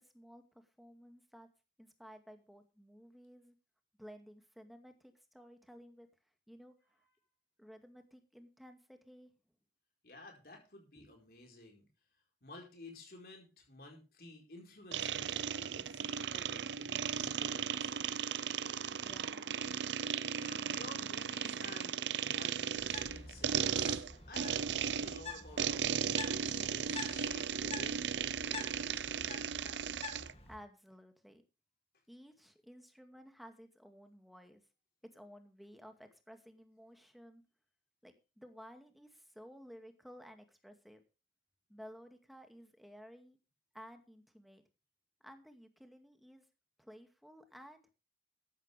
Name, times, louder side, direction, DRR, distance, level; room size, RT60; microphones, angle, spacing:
voice 1, 0.0-1.5 1.8-3.6 4.0-6.1 6.5-7.1 7.6-9.3 18.9-19.5 30.5-31.4 32.1-34.6 35.1-37.4 38.0-41.0 41.7-43.4 43.7-44.6 45.2-46.5 46.8-47.9, equal, ahead, 6 dB, 2.1 m, -55 dB
voice 2, 10.0-11.9 12.4-18.4 20.4-29.7, left 2 dB, 55° left, 2 dB, 4.6 m, -54 dB
sound 1, 14.9-30.3, right 7 dB, 85° right, 0.6 m, -36 dB
Bird, 22.8-30.6, left 4 dB, 35° left, 2.6 m, -48 dB
14.5 x 12.0 x 3.4 m, 0.32 s
head